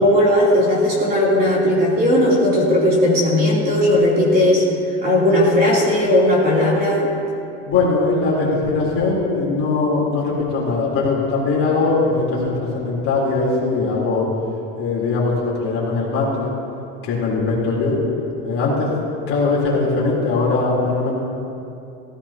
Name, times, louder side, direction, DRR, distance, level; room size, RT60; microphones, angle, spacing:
voice 1, 0.0-4.6 5.0-7.1, left 1 dB, 25° right, -6 dB, 3.3 m, -16 dB
voice 2, 7.7-14.3 14.8-16.5 17.0-18.0 18.4-21.1, left 3 dB, 35° left, -5 dB, 3.8 m, -20 dB
17.0 x 15.5 x 2.9 m, 2.7 s
supercardioid pair, 150°, 37 cm